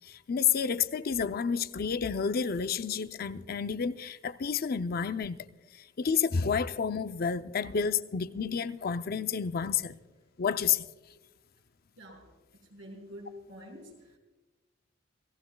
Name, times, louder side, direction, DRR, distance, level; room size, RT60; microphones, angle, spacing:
voice 1, 0.0-5.5 6.0-10.0 10.4-10.8, left 6 dB, 50° left, 0.5 m, -30 dB
voice 2, 12.0-14.2, equal, 70° right, 5.2 m, -48 dB
27.0 x 17.5 x 2.3 m
head